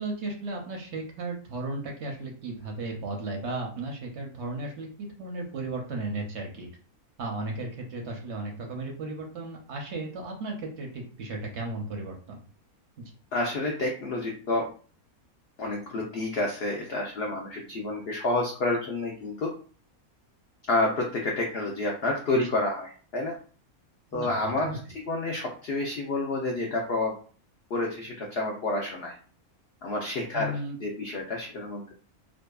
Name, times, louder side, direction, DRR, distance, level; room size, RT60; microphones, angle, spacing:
voice 1, 0.0-6.7 7.2-12.4 22.3-22.4 24.1-24.8 30.3-30.8, right 2 dB, 65° right, 1 dB, 0.7 m, -35 dB
voice 2, 13.3-14.6 15.6-19.5 20.7-23.4 24.1-27.1 27.7-29.1 29.8-31.9, left 2 dB, 80° left, -1 dB, 0.5 m, -29 dB
2.6 x 2.3 x 2.2 m, 0.41 s
omnidirectional pair, 1.6 m